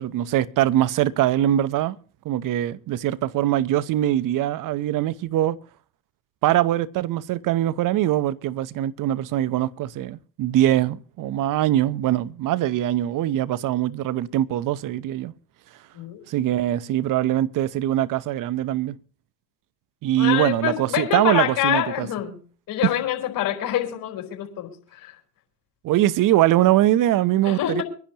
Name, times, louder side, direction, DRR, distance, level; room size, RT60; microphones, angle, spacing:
voice 1, 0.0-2.0 2.2-5.6 6.4-15.3 16.3-19.0 20.0-22.1 22.8-22.9 25.8-27.8, right 13 dB, 45° right, 0.8 m, -22 dB
voice 2, 20.2-22.4 22.7-25.1 27.4-27.8, left 12 dB, 50° left, 4.2 m, -26 dB
24.0 x 10.5 x 2.9 m
hypercardioid pair, 75°, 44 cm